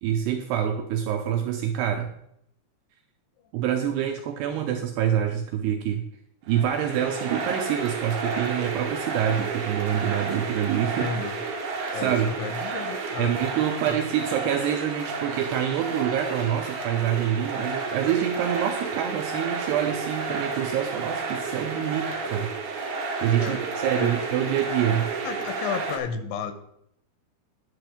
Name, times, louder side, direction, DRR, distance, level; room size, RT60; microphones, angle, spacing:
voice 1, 0.0-2.1 3.5-6.1 6.5-11.1 11.9-12.3 13.2-22.5 23.2-25.1, right 10 dB, 85° right, 5 dB, 2.4 m, -26 dB
sound 1, 6.5-26.0, right 4 dB, 55° right, 2.2 m, -31 dB
voice 2, 11.0-11.4 11.9-13.4 13.8-14.0 23.4-23.6 24.0-24.2 25.2-26.5, left 6 dB, 85° left, 9 dB, 3.2 m, -32 dB
11.0 x 6.1 x 5.1 m, 0.74 s
omnidirectional pair, 5.5 m